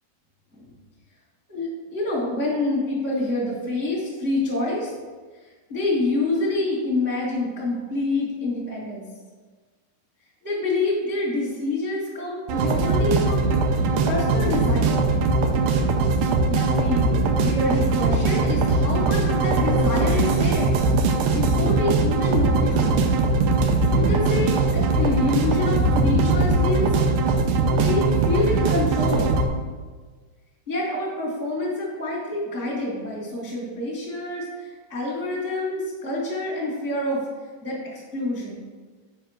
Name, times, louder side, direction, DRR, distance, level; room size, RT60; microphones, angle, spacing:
voice 1, 1.5-4.9 5.7-9.0 10.4-13.5 14.0-15.0 16.5-20.7 21.3-22.9 23.9-26.9 27.7-29.4 30.7-37.2 37.6-38.6, left 2 dB, 20° right, -6 dB, 0.5 m, -27 dB
sound 1, 12.5-29.5, right 3 dB, 85° right, 1.9 m, -21 dB
7.1 x 5.0 x 4.5 m, 1.4 s
omnidirectional pair, 4.5 m